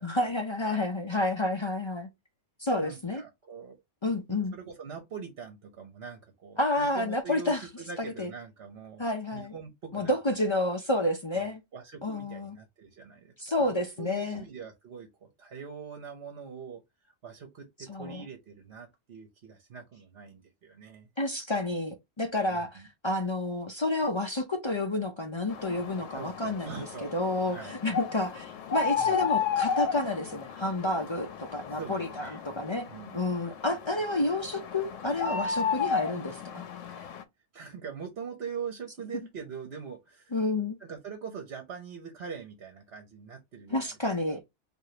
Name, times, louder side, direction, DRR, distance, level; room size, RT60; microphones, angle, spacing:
voice 1, 0.0-2.1 2.6-3.2 4.0-4.5 6.6-7.7 8.0-8.3 9.0-9.5 9.9-11.6 12.0-12.6 13.4-14.4 17.9-18.2 21.2-26.9 27.1-32.9 33.1-36.6 40.3-40.8 43.7-44.5, left 2 dB, 40° left, 0.4 m, -30 dB
voice 2, 2.7-3.8 4.3-9.0 9.3-10.2 11.3-21.1 22.5-22.9 26.1-27.1 27.5-27.8 29.0-29.2 31.7-32.4 32.9-33.2 36.9-37.2 37.5-40.4 40.8-43.9 44.3-44.4, right 6 dB, 60° right, 1.0 m, -43 dB
sound 1, 25.5-37.2, left 6 dB, 90° left, 1.0 m, -33 dB
4.9 x 2.6 x 2.7 m
omnidirectional pair, 1.3 m